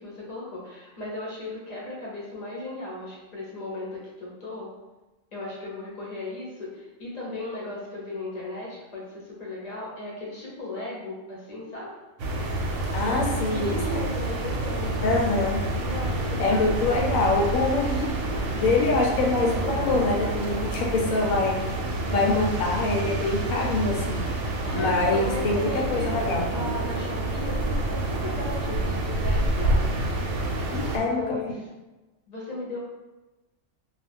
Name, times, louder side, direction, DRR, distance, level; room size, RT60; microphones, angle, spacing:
voice 1, 0.0-4.7 5.3-11.9 13.0-13.2 13.5-15.0 15.8-16.4 24.6-30.4 30.8-31.7 32.3-32.8, left 2 dB, 40° left, -5 dB, 0.7 m, -36 dB
sound 1, 12.2-31.0, right 2 dB, 70° right, 0.9 m, -28 dB
voice 2, 12.9-13.8 15.0-15.6 16.4-18.1 18.6-21.5 22.1-24.2 24.7-26.4 30.7-31.4, left 3 dB, 80° left, 0 dB, 1.0 m, -24 dB
2.4 x 2.2 x 3.3 m, 1.1 s
omnidirectional pair, 1.4 m